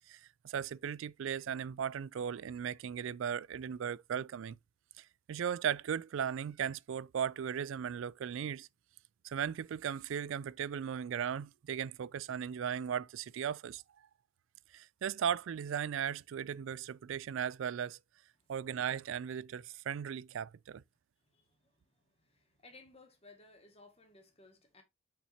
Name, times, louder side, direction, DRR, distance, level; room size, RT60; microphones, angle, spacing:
voice 1, 0.1-4.6 5.0-8.7 9.2-13.8 14.7-18.0 18.5-20.8, right 8 dB, 60° right, 0.3 m, -37 dB
voice 2, 21.3-21.7 22.2-24.8, left 3 dB, 30° left, 1.9 m, -59 dB
6.4 x 5.8 x 2.8 m
head